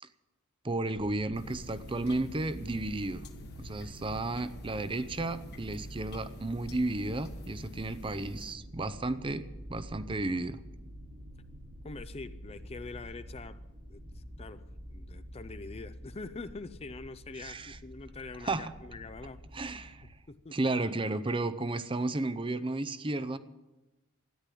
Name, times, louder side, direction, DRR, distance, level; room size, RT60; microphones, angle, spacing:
voice 1, 0.6-3.2 3.6-10.6 17.4-17.8 18.4-18.7 19.5-20.1 20.5-23.4, right 2 dB, 20° right, 13 dB, 0.6 m, -33 dB
sound 1, 0.9-20.1, equal, 90° right, 3.3 m, -47 dB
sound 2, 1.3-8.5, left 1 dB, 45° left, 1.3 m, -51 dB
voice 2, 11.8-13.6 13.9-19.4 20.3-20.6, left 3 dB, 25° left, 13 dB, 0.5 m, -44 dB
13.5 x 10.0 x 10.0 m, 1.1 s
head